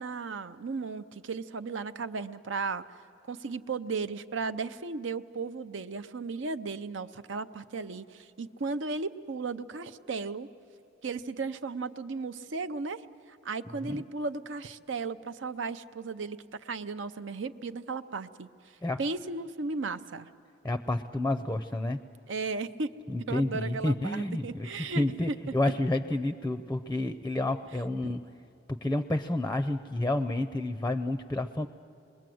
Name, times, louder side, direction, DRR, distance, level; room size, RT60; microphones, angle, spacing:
voice 1, 0.0-2.8 3.3-10.5 11.0-13.0 13.4-18.5 19.0-20.3 22.3-22.9 23.3-25.3 28.0-28.1, right 4 dB, 75° right, 11 dB, 0.7 m, -35 dB
voice 2, 20.6-22.0 23.1-28.2 28.7-31.7, left 1 dB, 10° left, 8 dB, 0.5 m, -30 dB
27.5 x 21.5 x 7.8 m, 2.7 s
head